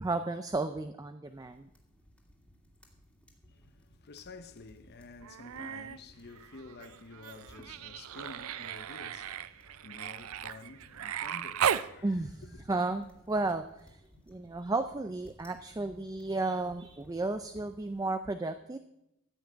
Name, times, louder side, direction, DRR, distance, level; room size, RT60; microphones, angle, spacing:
voice 1, 0.0-1.7 12.0-12.4 12.7-14.0 14.3-18.8, right 2 dB, 15° right, 0.4 m, -33 dB
sound 1, 1.2-18.0, equal, 5° left, 2.2 m, -61 dB
voice 2, 3.4-12.7, left 3 dB, 50° left, 0.7 m, -51 dB
Human voice, 5.2-6.0 6.3-11.9 13.5-13.6, right 8 dB, 70° right, 0.5 m, -36 dB
14.5 x 5.9 x 8.7 m
head